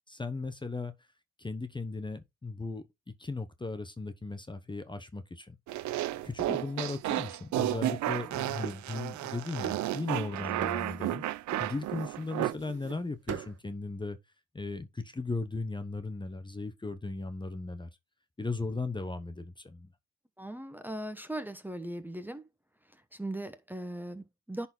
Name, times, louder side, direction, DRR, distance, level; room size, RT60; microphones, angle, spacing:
voice 1, 0.1-0.9 1.4-2.8 3.2-5.6 6.2-11.2 11.6-14.2 14.5-17.9 18.4-19.9, left 3 dB, 15° left, 1.1 m, -37 dB
sound 1, 5.7-12.5, right 14 dB, 70° right, 0.6 m, -33 dB
sound 2, 6.4-8.3 8.6-9.4 9.6-10.3 10.6-11.2 11.5-13.0 13.3-13.6, right 8 dB, 50° right, 1.7 m, -41 dB
voice 2, 20.4-22.4 22.9-24.7, right 1 dB, 5° right, 1.1 m, -39 dB
10.5 x 4.2 x 4.0 m
cardioid pair, 90°, 30 cm